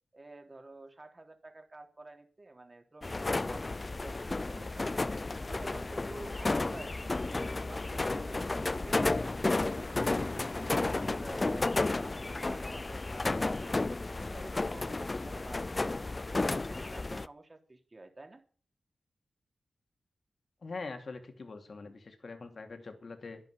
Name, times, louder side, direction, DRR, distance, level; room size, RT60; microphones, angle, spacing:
voice 1, 0.1-5.0 5.5-7.3 7.7-10.4 10.7-11.7 12.0-13.8 14.1-15.8 16.2-18.4, right 2 dB, 35° right, 5 dB, 3.3 m, -50 dB
sound 1, 3.0-17.3, left 2 dB, 35° left, 0.5 m, -32 dB
voice 2, 20.6-23.5, left 3 dB, 55° left, 6 dB, 2.8 m, -43 dB
11.0 x 10.5 x 8.5 m, 0.43 s
cardioid pair, 60°, 0 cm